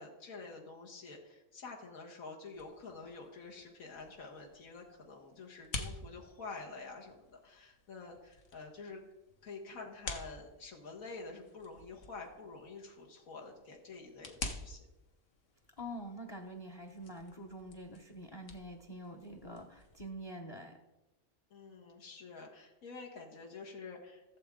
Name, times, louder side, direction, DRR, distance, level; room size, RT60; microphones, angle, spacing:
voice 1, 0.0-9.0 9.4-14.9 21.5-24.4, left 4 dB, 80° left, -1 dB, 1.9 m, -48 dB
sound 1, 2.5-20.1, left 3 dB, 60° left, 1.5 m, -49 dB
voice 2, 15.8-20.8, equal, 25° left, 4 dB, 0.7 m, -46 dB
15.5 x 7.5 x 3.7 m, 1.0 s
omnidirectional pair, 1.4 m